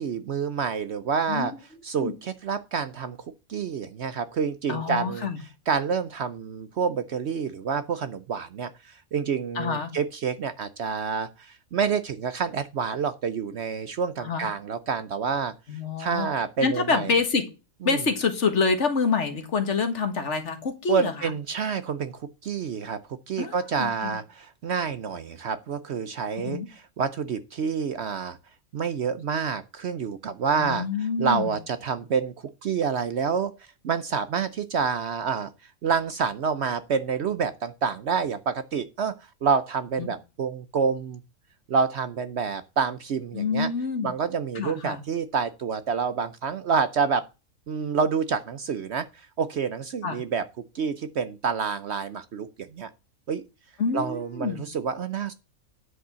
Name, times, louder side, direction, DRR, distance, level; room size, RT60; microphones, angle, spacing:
voice 1, 0.0-1.5 1.8-3.2 3.5-5.3 5.7-15.5 16.0-17.1 17.8-18.0 20.9-23.0 23.3-28.4 28.7-30.9 31.2-33.5 33.8-35.5 35.8-39.1 39.4-41.2 41.7-43.7 44.0-47.2 47.7-50.4 50.7-52.9 53.3-53.4 53.9-55.3, right 6 dB, 60° right, 0.8 m, -28 dB
voice 2, 4.7-5.4 9.5-9.9 14.2-14.5 15.7-16.3 16.6-17.5 17.8-21.3 23.4-24.2 26.4-26.7 30.6-31.6 40.0-40.1 43.3-44.1 44.5-45.0 50.0-50.2 53.8-54.6, left 5 dB, 55° left, 1.8 m, -27 dB
9.9 x 5.2 x 6.8 m
omnidirectional pair, 1.5 m